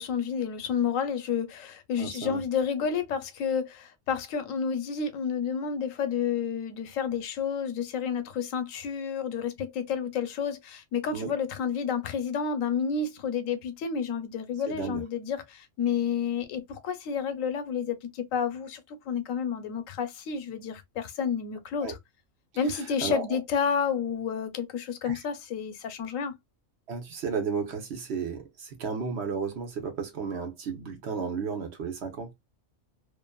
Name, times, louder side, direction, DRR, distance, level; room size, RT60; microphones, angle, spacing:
voice 1, 0.0-22.0 22.6-26.3, left 7 dB, 80° left, 1.0 m, -30 dB
voice 2, 2.0-2.4 11.1-11.3 14.7-15.0 21.8-21.9 22.8-23.4 25.0-25.2 26.9-32.3, right 5 dB, 60° right, 1.0 m, -33 dB
2.5 x 2.5 x 2.2 m
omnidirectional pair, 1.3 m